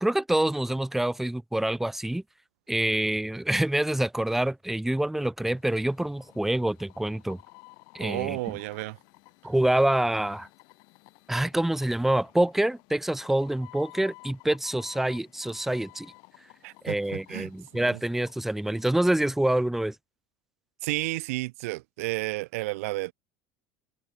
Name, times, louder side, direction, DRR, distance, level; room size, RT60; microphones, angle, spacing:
voice 1, 0.0-2.2 2.7-7.4 7.9-8.4 9.4-10.5 11.3-16.1 16.8-19.9, right 1 dB, 5° right, 1.0 m, -26 dB
sound 1, 5.5-19.1, left 32 dB, 65° left, 4.2 m, -54 dB
voice 2, 8.0-9.0 16.6-18.0 20.8-23.1, right 21 dB, 80° right, 1.1 m, -32 dB
supercardioid pair, 115°, 8 cm